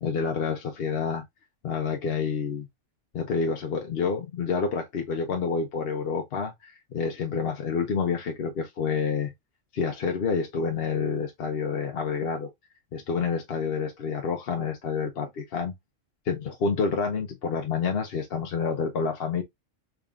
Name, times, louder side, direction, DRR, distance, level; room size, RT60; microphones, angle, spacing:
voice 1, 0.0-1.2 1.6-2.7 3.1-9.3 9.7-12.5 12.9-15.7 16.3-19.4, left 5 dB, 55° left, 0.9 m, -28 dB
3.6 x 3.6 x 2.3 m
omnidirectional pair, 1.3 m